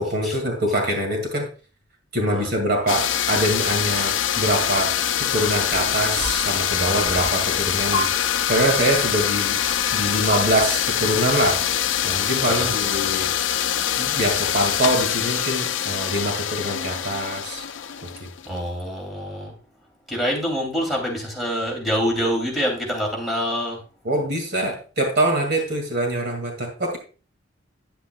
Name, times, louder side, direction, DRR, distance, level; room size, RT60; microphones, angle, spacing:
voice 1, 0.0-1.5 2.1-9.6 9.9-11.6 12.0-13.3 14.0-17.6 18.0-18.3 24.0-27.0, right 1 dB, 60° right, 3 dB, 2.0 m, -24 dB
sound 1, 2.9-18.6, left 10 dB, 75° left, 0.5 m, -24 dB
sound 2, 5.7-13.1, equal, 35° right, 1.8 m, -35 dB
voice 2, 18.5-19.5 20.1-23.8, equal, ahead, -1 dB, 2.7 m, -26 dB
10.0 x 8.1 x 2.2 m, 0.37 s
head